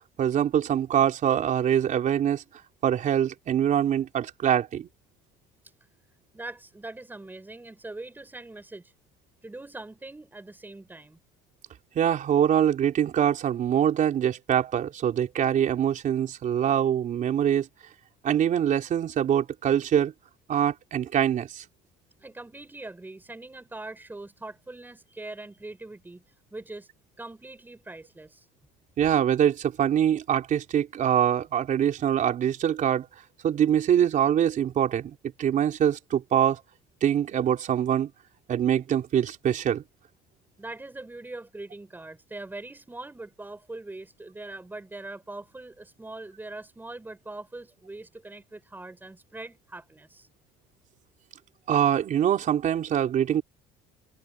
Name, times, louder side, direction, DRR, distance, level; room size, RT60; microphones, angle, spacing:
voice 1, 0.2-2.4 2.8-4.9 12.0-17.7 18.2-20.1 20.5-21.6 29.0-33.1 33.4-36.6 37.0-38.1 38.5-39.8 51.7-53.4, right 9 dB, 45° right, 3.9 m, -24 dB
voice 2, 6.3-8.9 9.4-11.2 22.2-26.2 26.5-26.9 27.2-28.5 40.6-50.3, right 2 dB, 10° right, 7.0 m, -42 dB
cardioid pair, 135°, 19 cm